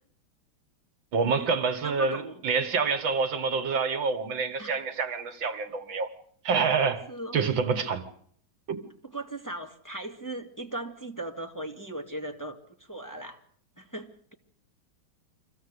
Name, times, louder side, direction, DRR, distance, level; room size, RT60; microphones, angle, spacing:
voice 1, 1.1-6.1 6.4-7.0 7.3-8.0 8.7-8.8, right 5 dB, 70° right, 2.3 m, -27 dB
voice 2, 1.8-2.4 4.6-4.8 7.1-7.4 9.1-13.4 13.8-14.3, right 1 dB, 10° left, 2.1 m, -38 dB
25.0 x 16.0 x 8.2 m
omnidirectional pair, 2.2 m